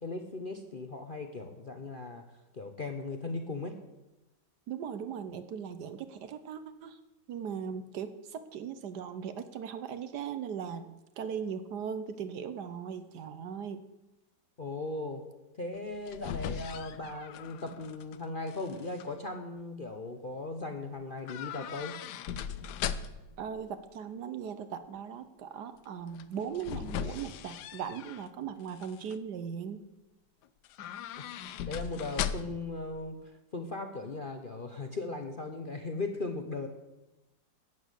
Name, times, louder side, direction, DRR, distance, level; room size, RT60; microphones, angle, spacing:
voice 1, 0.0-2.2 2.5-3.7 14.6-15.2 15.6-21.9 31.2-33.2 33.5-36.7, left 3 dB, 40° left, 5 dB, 0.7 m, -38 dB
voice 2, 4.7-7.0 7.3-10.9 11.2-13.8 23.4-29.8, right 7 dB, 65° right, 11 dB, 1.3 m, -38 dB
sound 1, 15.8-18.2 18.5-19.1 21.3-23.4 26.1-28.3 28.7-29.2 30.6-32.7 33.0-33.1, left 8 dB, 70° left, 1.1 m, -38 dB
11.5 x 8.3 x 8.2 m, 1.0 s
omnidirectional pair, 2.1 m